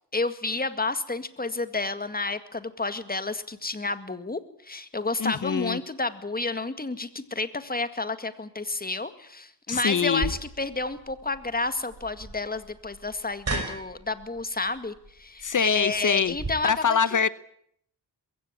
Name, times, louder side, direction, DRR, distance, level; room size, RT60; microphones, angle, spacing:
voice 1, 0.1-17.2, left 3 dB, 20° left, 11 dB, 2.0 m, -30 dB
voice 2, 5.2-5.8 9.7-10.3 15.4-16.3 16.6-17.3, left 7 dB, 50° left, 17 dB, 0.9 m, -24 dB
sound 1, 10.2-16.5, right 3 dB, 40° right, 6.1 m, -37 dB
22.0 x 16.0 x 9.8 m, 0.69 s
cardioid pair, 80°, 41 cm